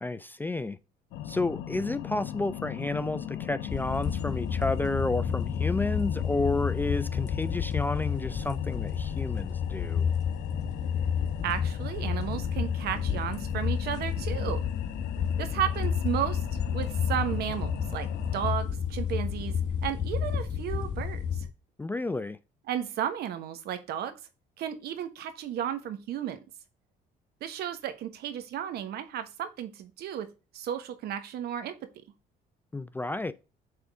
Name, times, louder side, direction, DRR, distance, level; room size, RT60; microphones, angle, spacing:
voice 1, 0.0-0.8 1.3-10.1 21.8-22.4 32.7-33.3, left 2 dB, 10° left, 0.3 m, -31 dB
sound 1, 1.1-18.5, left 11 dB, 85° left, 0.6 m, -40 dB
sound 2, 3.7-21.4, left 7 dB, 45° left, 1.6 m, -30 dB
voice 2, 11.4-14.6 15.4-16.4 16.7-19.5 19.8-21.5 22.7-24.1 24.6-26.4 27.4-30.3 30.5-31.7, right 10 dB, 70° right, 1.2 m, -33 dB
7.7 x 3.7 x 3.5 m
cardioid pair, 110°, 17 cm